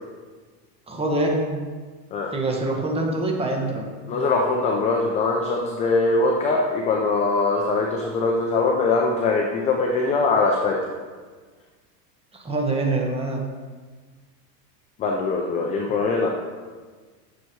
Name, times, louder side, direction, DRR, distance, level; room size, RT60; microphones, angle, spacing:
voice 1, 0.9-1.5 2.3-3.9 12.3-13.4 15.8-15.9, right 2 dB, 10° right, 0 dB, 1.3 m, -25 dB
voice 2, 4.1-10.8 15.0-16.3, left 3 dB, 15° left, 1 dB, 0.4 m, -22 dB
9.3 x 6.8 x 4.6 m, 1.5 s
supercardioid pair, 155°, 48 cm